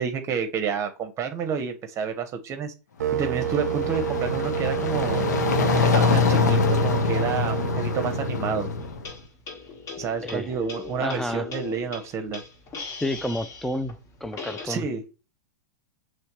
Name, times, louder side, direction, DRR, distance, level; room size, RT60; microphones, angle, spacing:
voice 1, 0.0-2.7 3.1-5.3 5.6-8.7 10.0-12.4 14.6-15.0, right 6 dB, 35° right, 0.8 m, -29 dB
sound 1, 3.0-9.1, right 11 dB, 75° right, 0.5 m, -30 dB
sound 2, 3.1-9.1, left 5 dB, 80° left, 0.7 m, -24 dB
sound 3, 8.8-14.7, left 4 dB, 35° left, 1.2 m, -39 dB
voice 2, 11.0-11.5 13.0-14.0 14.2-14.9, left 1 dB, 5° left, 0.4 m, -30 dB
5.6 x 3.1 x 3.0 m
hypercardioid pair, 105°, 9 cm